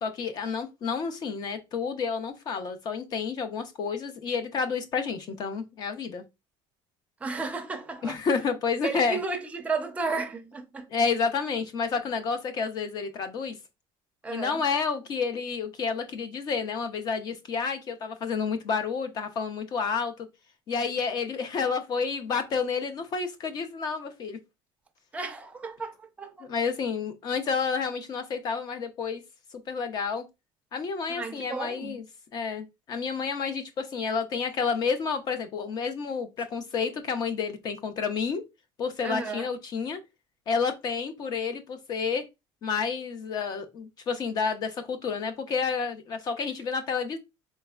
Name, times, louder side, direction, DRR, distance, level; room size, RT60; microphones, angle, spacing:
voice 1, 0.0-6.2 8.0-9.2 10.9-13.6 14.3-20.3 20.7-24.4 26.5-29.2 29.7-30.2 30.7-32.0 32.3-38.4 38.8-40.0 40.5-42.2 42.6-47.2, left 5 dB, 35° left, 0.6 m, -30 dB
voice 2, 7.2-8.2 8.8-10.9 14.2-14.6 25.1-26.5 31.1-32.0 39.0-39.5, right 4 dB, 10° right, 0.5 m, -33 dB
4.1 x 3.4 x 2.3 m
cardioid pair, 160°, 11 cm